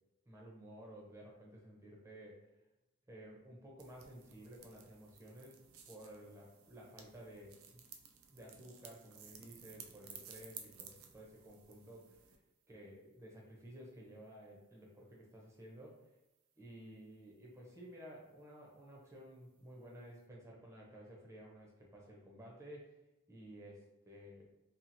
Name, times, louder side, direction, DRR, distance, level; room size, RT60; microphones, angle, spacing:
voice 1, 0.3-2.5 3.1-5.6 5.9-7.9 8.3-12.1 12.7-16.0 16.6-22.9 23.3-24.5, equal, 15° right, -3 dB, 0.6 m, -54 dB
sound 1, 3.8-12.4, right 7 dB, 65° right, 0.4 m, -56 dB
2.8 x 2.4 x 2.6 m, 0.95 s
head